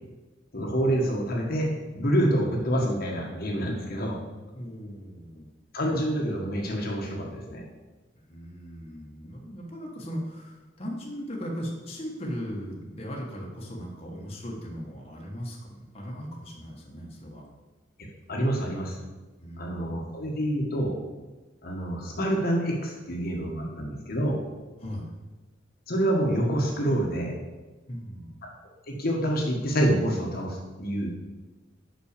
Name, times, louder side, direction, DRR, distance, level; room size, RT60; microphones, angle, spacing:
voice 1, 0.5-1.7 1.9-4.2 5.7-7.6 18.3-19.0 19.6-21.0 21.6-24.4 25.9-27.3 28.9-31.1, right 1 dB, 55° left, -1 dB, 1.4 m, -27 dB
voice 2, 4.5-5.5 8.3-17.4 19.4-20.0 24.8-25.1 27.9-28.4, equal, 35° left, -2 dB, 1.3 m, -38 dB
5.9 x 5.5 x 6.6 m, 1.2 s
head